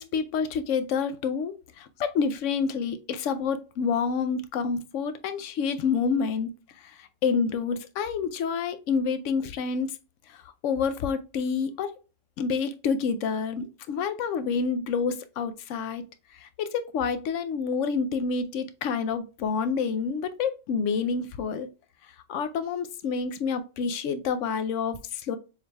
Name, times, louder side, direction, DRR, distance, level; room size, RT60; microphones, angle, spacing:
voice 1, 0.0-10.0 10.3-11.9 12.4-16.0 16.3-21.7 22.3-25.4, left 5 dB, 80° left, 0.9 m, -28 dB
6.9 x 3.2 x 2.3 m
omnidirectional pair, 1.3 m